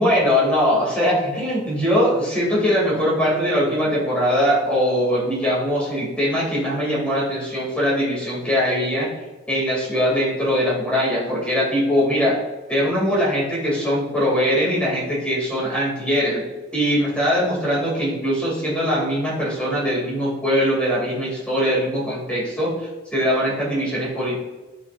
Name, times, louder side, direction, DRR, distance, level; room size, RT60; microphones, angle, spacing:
voice 1, 0.0-9.1 9.5-12.4 12.7-16.4 16.7-24.4, equal, 5° left, -6 dB, 2.7 m, -21 dB
10.5 x 5.9 x 2.6 m, 1.1 s
head